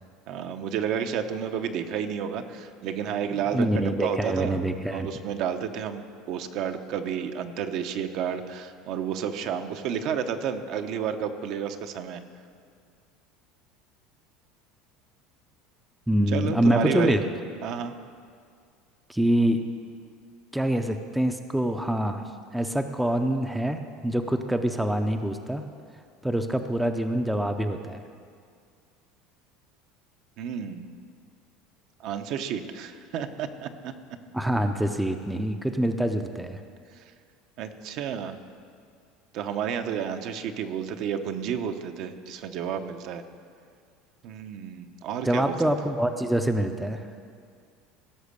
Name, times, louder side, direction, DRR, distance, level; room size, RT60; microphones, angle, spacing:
voice 1, 0.3-4.6 4.9-12.2 16.3-17.2 17.6-17.9 30.4-30.9 32.0-33.9 37.6-38.4 39.3-43.2 44.2-45.5, right 8 dB, 50° right, 8 dB, 0.7 m, -31 dB
voice 2, 3.5-5.1 16.1-17.2 19.1-19.6 20.5-22.2 22.5-25.6 26.2-28.0 34.3-36.6 45.2-47.1, right 1 dB, 5° right, 6 dB, 0.5 m, -25 dB
16.5 x 6.1 x 6.7 m, 2.2 s
cardioid pair, 145°, 0 cm